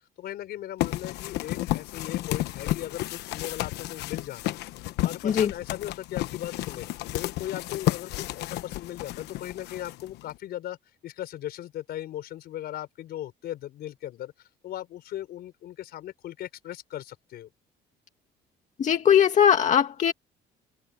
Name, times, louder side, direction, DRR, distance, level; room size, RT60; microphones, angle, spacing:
voice 1, 0.2-4.6 5.0-6.9 7.1-10.8 11.0-17.5, left 13 dB, 70° left, 4.5 m, -38 dB
sound 1, 0.8-10.3, left 16 dB, 85° left, 1.1 m, -32 dB
voice 2, 18.8-20.1, left 8 dB, 45° left, 2.0 m, -20 dB
cardioid pair, 110°, 17 cm